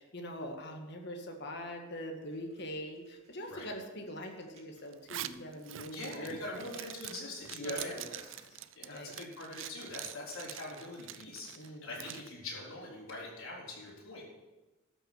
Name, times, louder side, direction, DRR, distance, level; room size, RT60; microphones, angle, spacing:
voice 1, 0.0-6.8 7.5-8.1 8.5-8.6 8.9-9.1 11.6-12.1, equal, 55° left, 3 dB, 1.8 m, -42 dB
sound 1, 2.1-9.1, right 5 dB, 30° right, 2.5 m, -56 dB
Zipper (clothing), 4.9-12.3, right 12 dB, 65° right, 0.5 m, -45 dB
voice 2, 5.9-8.2 8.8-14.2, left 2 dB, 90° left, -4 dB, 4.1 m, -44 dB
13.0 x 6.3 x 7.7 m, 1.1 s
head